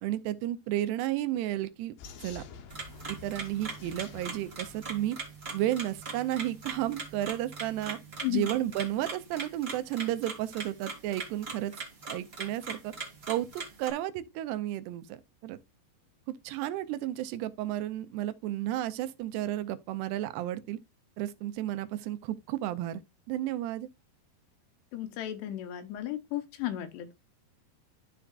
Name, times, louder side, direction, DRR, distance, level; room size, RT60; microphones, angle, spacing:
voice 1, 0.0-1.9 2.2-2.4 3.1-5.2 5.5-8.0 8.3-11.7 12.1-12.9 13.3-15.6 16.3-20.8 21.2-23.0 23.3-23.9, right 13 dB, 85° right, 2.7 m, -32 dB
Vehicle, 2.0-5.9, left 5 dB, 70° left, 2.4 m, -50 dB
sound 1, 2.7-13.9, right 4 dB, 40° right, 0.8 m, -41 dB
voice 2, 24.9-27.1, left 14 dB, 85° left, 3.1 m, -34 dB
13.0 x 4.6 x 2.4 m
omnidirectional pair, 4.8 m